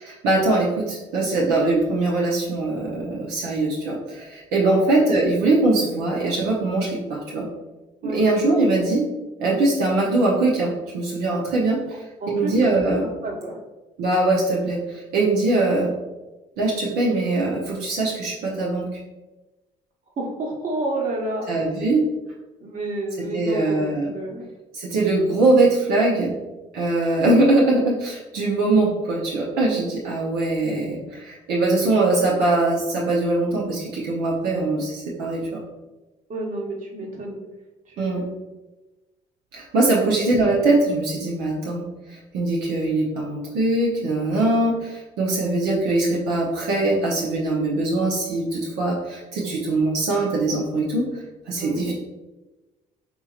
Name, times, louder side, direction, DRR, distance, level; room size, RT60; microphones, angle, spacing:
voice 1, 0.1-7.5 8.0-9.0 9.4-13.1 14.0-15.9 16.6-18.9 21.5-22.0 23.3-24.1 24.7-26.3 26.7-35.6 38.0-38.2 39.5-51.0 51.5-51.9, right 2 dB, 90° right, -3 dB, 0.7 m, -22 dB
voice 2, 12.2-12.7 13.0-13.6 20.2-21.4 22.6-24.5 36.3-37.4 37.9-38.3 40.0-40.2 51.6-51.9, right 1 dB, 55° right, -1 dB, 1.2 m, -30 dB
5.4 x 2.9 x 2.4 m, 1.1 s
supercardioid pair, 80°, 16 cm